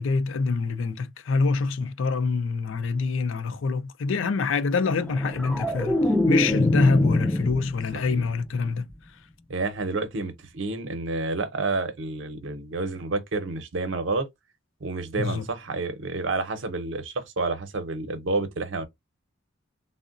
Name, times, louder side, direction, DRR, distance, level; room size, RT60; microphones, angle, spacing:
voice 1, 0.0-8.9 15.2-15.5, left 4 dB, 75° left, 0.4 m, -25 dB
sound 1, 5.0-8.2 8.5-8.9, left 1 dB, 5° left, 0.3 m, -25 dB
voice 2, 9.5-14.3 14.8-18.9, right 3 dB, 70° right, 0.7 m, -29 dB
3.6 x 2.1 x 2.4 m
head